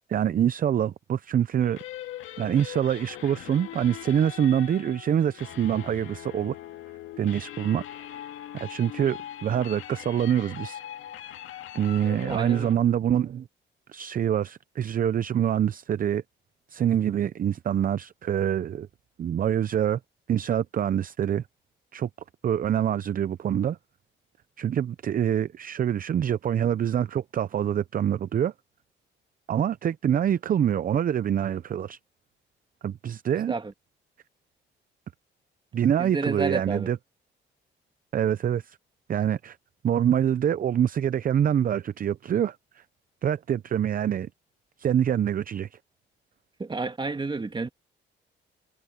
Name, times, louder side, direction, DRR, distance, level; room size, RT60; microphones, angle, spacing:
voice 1, 0.1-1.8 2.4-6.6 7.2-7.8 8.5-10.8 11.7-13.5 13.9-16.2 16.7-18.9 19.2-20.0 20.3-21.4 21.9-22.1 22.4-23.8 24.6-28.5 29.5-32.0 32.8-33.5 35.7-37.0 38.1-38.8 39.1-39.6 39.8-42.8 43.2-44.3 44.8-45.8, right 9 dB, 45° right, 0.6 m, -25 dB
sound 1, 1.6-12.7, left 12 dB, 85° left, 2.1 m, -41 dB
voice 2, 12.3-12.7 33.5-33.7 36.0-36.9 46.6-47.7, right 3 dB, 25° right, 2.1 m, -30 dB
cardioid pair, 90°, 20 cm